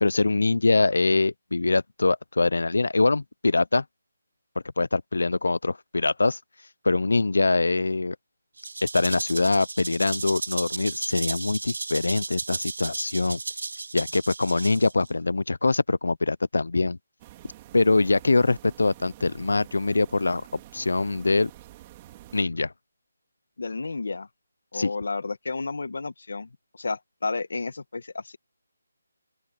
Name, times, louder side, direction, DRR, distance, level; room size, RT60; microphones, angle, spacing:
voice 1, 0.0-3.8 4.8-6.4 6.8-8.2 8.9-13.4 13.9-17.0 17.7-20.4 20.7-21.5 22.3-22.7 24.7-24.9, left 3 dB, 80° left, 0.4 m, -23 dB
Rattle (instrument), 8.6-15.1, right 3 dB, 60° right, 0.7 m, -34 dB
sound 1, 17.2-22.4, right 15 dB, 15° right, 2.1 m, -48 dB
voice 2, 23.6-24.3 24.7-28.4, left 3 dB, 60° left, 1.3 m, -32 dB
open air
hypercardioid pair, 180°, 0 cm